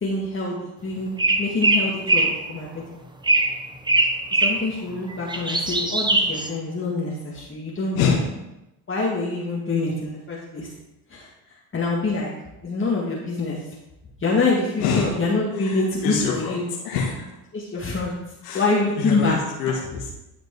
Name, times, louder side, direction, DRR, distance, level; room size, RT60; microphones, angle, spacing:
voice 1, 0.0-2.8 4.4-8.1 8.9-10.7 11.1-11.3 11.7-12.3 12.6-13.6 14.2-16.6 17.5-18.1 18.5-19.4, left 3 dB, 25° left, -4 dB, 2.0 m, -25 dB
sound 1, 1.2-2.4 3.2-3.6 3.9-4.6 5.1-6.5, right 2 dB, 10° right, 1.1 m, -21 dB
voice 2, 14.8-15.1 15.6-16.6 16.8-17.2 18.4-18.6 19.0-20.1, left 5 dB, 85° left, -4 dB, 1.8 m, -25 dB
12.0 x 5.2 x 4.8 m, 0.93 s
supercardioid pair, 90°, 45 cm